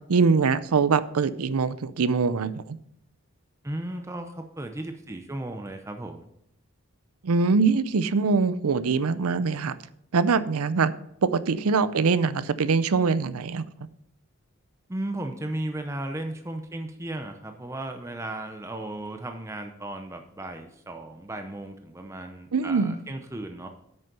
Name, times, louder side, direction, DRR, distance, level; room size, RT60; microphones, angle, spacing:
voice 1, 0.1-2.8 7.2-9.8 10.1-10.9 11.2-13.6 22.5-22.9, right 4 dB, 80° right, 15 dB, 0.5 m, -23 dB
voice 2, 3.6-6.3 14.9-23.7, right 1 dB, 15° right, 5 dB, 0.6 m, -35 dB
9.0 x 6.4 x 5.3 m, 0.73 s
head